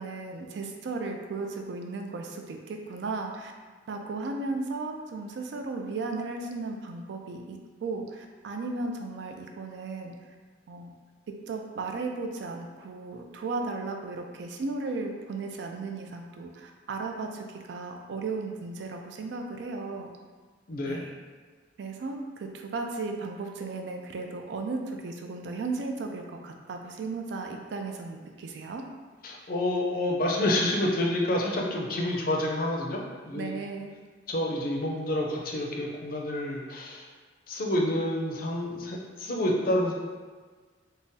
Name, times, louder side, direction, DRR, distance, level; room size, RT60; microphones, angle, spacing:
voice 1, 0.0-3.5 3.9-10.1 10.7-10.9 11.5-20.1 20.9-21.1 21.8-28.8 33.3-33.9, right 3 dB, 70° right, 3 dB, 0.4 m, -35 dB
voice 2, 20.7-21.0 29.2-33.0 33.3-33.5 34.3-37.0 37.5-39.9, left 1 dB, 55° left, -1 dB, 0.5 m, -28 dB
3.6 x 2.0 x 2.6 m, 1.4 s
head